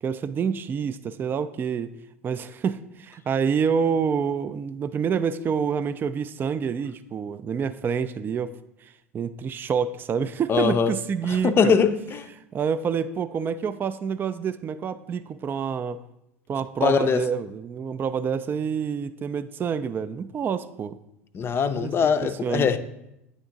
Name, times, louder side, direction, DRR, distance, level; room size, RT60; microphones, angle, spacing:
voice 1, 0.0-1.9 2.2-11.8 12.5-16.0 16.5-21.0 21.8-21.9 22.4-22.7, right 6 dB, 25° right, 0.3 m, -27 dB
voice 2, 10.5-10.9 11.3-11.9 12.2-12.3 16.8-17.2 21.3-22.8, left 6 dB, 30° left, 0.5 m, -21 dB
9.2 x 3.6 x 3.9 m
hypercardioid pair, 85°, 8 cm